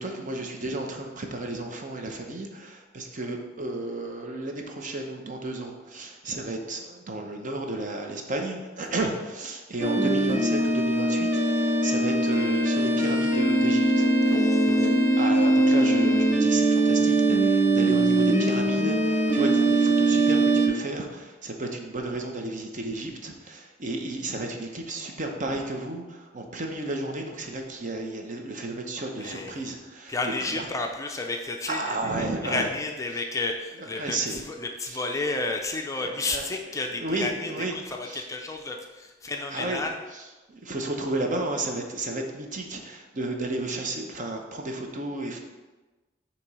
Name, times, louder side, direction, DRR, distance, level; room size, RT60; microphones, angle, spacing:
voice 1, 0.0-30.7 31.7-32.7 34.0-34.4 34.9-35.0 36.0-36.4 36.8-37.7 38.0-38.3 39.3-39.8 40.1-45.4, right 2 dB, 45° right, 3 dB, 0.8 m, -33 dB
sound 1, 9.8-20.7, right 2 dB, 15° right, 0.9 m, -21 dB
voice 2, 14.3-15.1 29.2-29.7 30.1-32.0 32.4-40.0, left 3 dB, 15° left, 2 dB, 0.4 m, -32 dB
6.8 x 3.0 x 4.8 m, 1.2 s
head